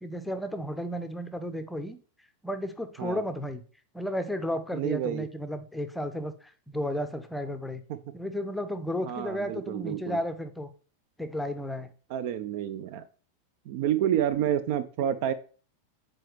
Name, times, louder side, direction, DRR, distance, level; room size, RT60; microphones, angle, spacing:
voice 1, 0.0-2.0 2.4-3.6 3.9-7.8 8.1-10.7 11.2-11.9, equal, 5° left, 9 dB, 0.6 m, -33 dB
voice 2, 4.7-5.3 7.9-8.0 9.0-10.2 12.1-13.0 13.7-15.3, right 10 dB, 50° right, 14 dB, 0.4 m, -29 dB
7.6 x 4.5 x 3.1 m, 0.39 s
figure-of-eight pair, 90°, 0 cm